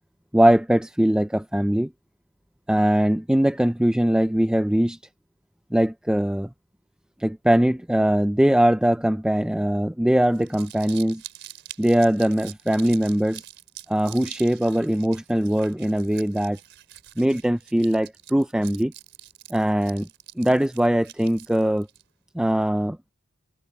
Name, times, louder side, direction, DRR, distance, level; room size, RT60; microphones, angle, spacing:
voice 1, 0.3-1.9 2.7-5.0 5.7-6.5 7.2-11.2 11.8-13.4 13.9-16.6 17.2-18.9 19.5-20.1 20.4-21.9 22.3-23.0, right 1 dB, 5° right, 0.4 m, -21 dB
Crumpling crinkling, 10.2-22.0, right 12 dB, 60° right, 4.4 m, -44 dB
head